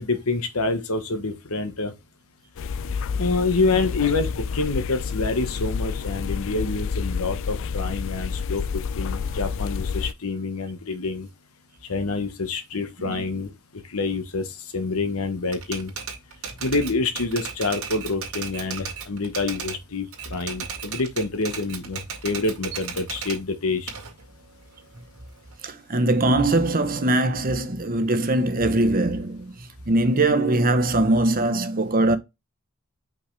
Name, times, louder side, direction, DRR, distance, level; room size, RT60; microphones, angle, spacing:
voice 1, 0.0-1.9 3.1-11.3 11.9-13.5 13.9-15.9 16.6-23.9, left 3 dB, 90° left, 1.2 m, -27 dB
sound 1, 2.6-10.1, left 5 dB, 65° left, 0.4 m, -29 dB
Typewriter, 15.5-19.8 20.1-23.4 23.9-25.5, right 6 dB, 80° right, 2.3 m, -35 dB
voice 2, 25.6-29.5 29.9-32.2, right 2 dB, 40° right, 1.0 m, -21 dB
5.6 x 5.4 x 3.3 m
head